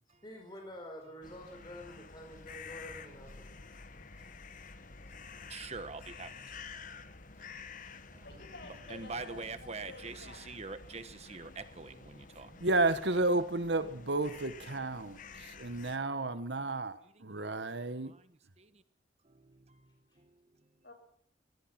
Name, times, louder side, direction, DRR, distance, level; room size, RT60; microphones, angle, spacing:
voice 1, 0.2-3.5, equal, 25° left, 4.6 m, -48 dB
sound 1, 1.2-16.0, left 4 dB, 50° left, 1.4 m, -50 dB
voice 2, 5.5-6.6 7.4-7.5 8.1-8.3 8.9-12.6 15.0-15.1 16.2-16.6 17.2-17.7 18.1-18.2 18.6-18.8 19.2-19.8 20.2-20.3, right 4 dB, 40° right, 1.2 m, -45 dB
voice 3, 8.2-10.4 20.8-20.9, left 2 dB, 75° left, 7.4 m, -50 dB
voice 4, 12.6-18.1, right 2 dB, 80° right, 1.5 m, -32 dB
24.5 x 18.0 x 6.1 m
head